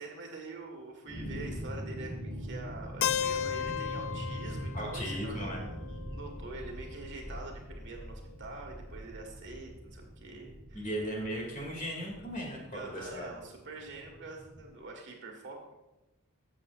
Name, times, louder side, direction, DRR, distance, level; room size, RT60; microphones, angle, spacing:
voice 1, 0.0-10.9 12.7-15.7, right 3 dB, 55° right, 1 dB, 1.7 m, -45 dB
sound 1, 1.1-14.7, equal, 10° left, 1.8 m, -43 dB
Keyboard (musical), 3.0-6.9, left 9 dB, 60° left, 0.4 m, -35 dB
voice 2, 4.7-5.7 10.7-13.3, equal, 35° left, -1 dB, 2.5 m, -37 dB
14.0 x 7.4 x 2.5 m, 0.99 s
head